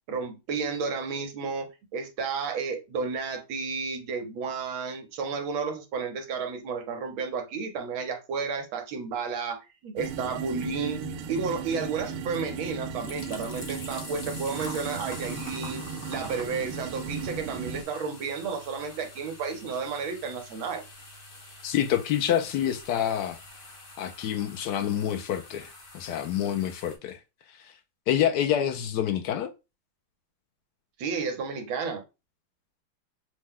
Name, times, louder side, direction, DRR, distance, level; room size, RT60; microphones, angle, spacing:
voice 1, 0.1-11.0 11.3-15.8 16.1-20.8 31.0-32.0, right 5 dB, 70° right, 1.5 m, -32 dB
sound 1, 10.0-17.8, right 6 dB, 90° right, 1.5 m, -36 dB
sound 2, 12.7-27.0, left 2 dB, 60° left, 0.5 m, -45 dB
voice 2, 21.6-23.4 24.0-27.2 27.5-27.7 28.1-29.5, left 10 dB, 75° left, 0.9 m, -27 dB
6.0 x 2.2 x 3.6 m
omnidirectional pair, 2.3 m